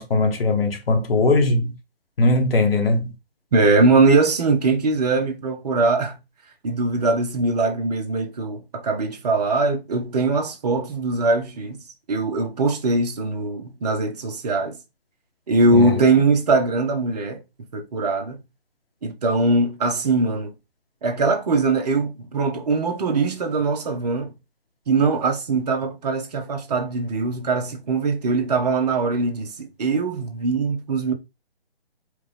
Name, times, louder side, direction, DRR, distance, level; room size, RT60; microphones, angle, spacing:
voice 1, 0.0-1.8 2.2-3.1 15.7-16.0, left 2 dB, 65° left, 1.2 m, -20 dB
voice 2, 3.5-6.2 6.6-11.8 12.1-14.8 15.5-17.4 17.7-18.4 19.0-20.5 21.0-24.3 24.9-31.1, right 3 dB, 40° right, 1.0 m, -21 dB
4.7 x 2.4 x 3.3 m
hypercardioid pair, 160°, 31 cm